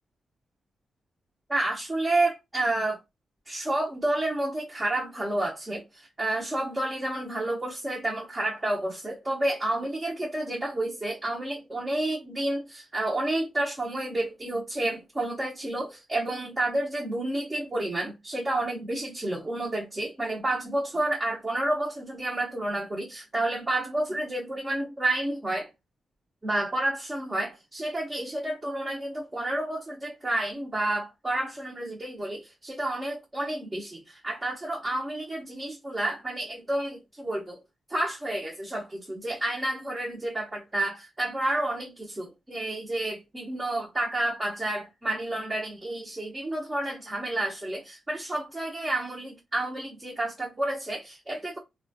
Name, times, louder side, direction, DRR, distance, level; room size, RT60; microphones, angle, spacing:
voice 1, 1.5-3.0 3.5-25.7 26.4-37.6 37.9-51.6, right 1 dB, 25° right, 0.7 m, -30 dB
3.0 x 2.2 x 2.7 m
cardioid pair, 85°, 0 cm